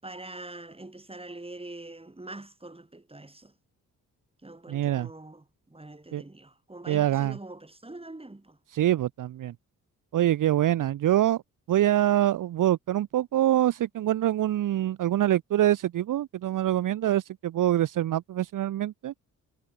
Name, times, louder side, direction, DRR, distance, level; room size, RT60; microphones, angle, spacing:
voice 1, 0.0-3.5 4.4-8.6, right 2 dB, 15° right, 7.0 m, -44 dB
voice 2, 4.7-5.1 6.1-6.2 6.9-7.4 8.7-9.5 10.1-11.4 11.7-19.1, right 12 dB, 60° right, 0.8 m, -25 dB
supercardioid pair, 65°, 35 cm